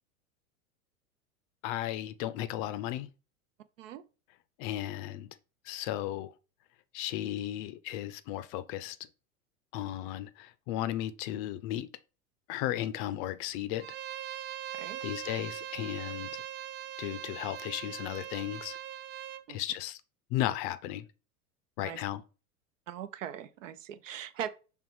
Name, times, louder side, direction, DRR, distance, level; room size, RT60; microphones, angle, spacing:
voice 1, 1.6-3.1 4.6-5.3 5.6-6.3 6.9-9.0 9.7-11.9 12.5-13.9 15.0-16.4 17.0-18.8 19.5-20.0 20.3-21.1 21.8-22.2, left 13 dB, 40° left, 0.5 m, -35 dB
Bowed string instrument, 13.8-19.4, right 11 dB, 35° right, 0.4 m, -41 dB
voice 2, 22.9-24.5, right 10 dB, 60° right, 0.8 m, -40 dB
5.6 x 3.6 x 4.7 m
figure-of-eight pair, 85°, 43 cm